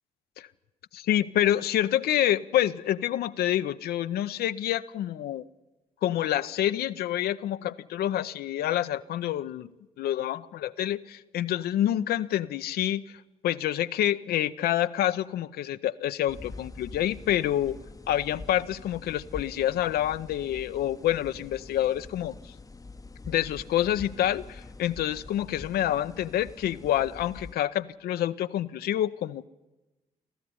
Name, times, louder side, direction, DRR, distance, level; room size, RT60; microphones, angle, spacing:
voice 1, 0.9-5.5 6.0-9.7 10.0-17.8 18.1-22.5 23.3-29.5, left 12 dB, 65° left, 12 dB, 0.6 m, -27 dB
sound 1, 16.3-27.5, left 3 dB, 20° left, 0.8 m, -45 dB
24.0 x 14.0 x 9.7 m, 1.1 s
hypercardioid pair, 40°, 18 cm